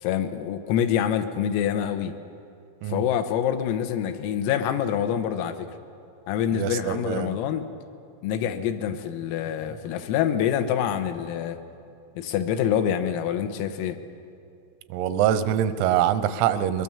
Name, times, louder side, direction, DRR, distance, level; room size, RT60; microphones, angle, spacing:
voice 1, 0.0-2.2 2.9-5.7 6.3-7.7 8.2-11.6 12.2-14.0, left 9 dB, 85° left, 7 dB, 3.7 m, -26 dB
voice 2, 6.5-7.4 14.9-16.8, right 10 dB, 85° right, 12 dB, 3.5 m, -24 dB
22.5 x 22.0 x 7.2 m, 2.5 s
omnidirectional pair, 6.0 m